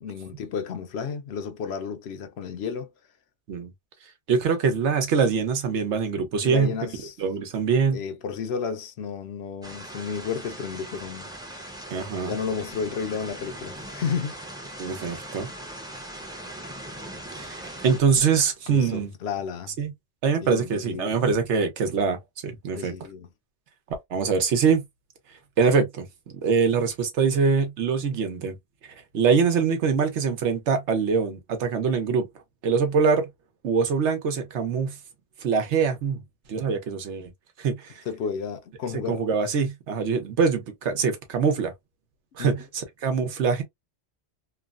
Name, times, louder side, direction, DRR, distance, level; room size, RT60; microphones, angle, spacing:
voice 1, 0.0-2.9 6.4-7.2 7.9-11.7 12.3-14.4 18.7-19.8 20.4-21.2 22.7-23.3 38.1-39.2 42.4-42.6, left 6 dB, 70° left, 0.8 m, -32 dB
voice 2, 4.3-6.7 7.2-8.0 11.9-12.3 14.8-15.5 17.4-19.1 19.8-19.9 20.2-22.2 22.4-22.9 24.1-24.8 25.6-26.1 26.3-28.5 29.1-32.3 32.6-33.3 33.6-35.0 35.4-36.2 36.5-37.3 37.6-38.0 39.1-41.7 42.4-43.6, right 5 dB, 90° right, 1.1 m, -23 dB
sound 1, 9.6-18.0, right 1 dB, 5° right, 0.5 m, -40 dB
3.0 x 2.1 x 2.3 m
omnidirectional pair, 1.1 m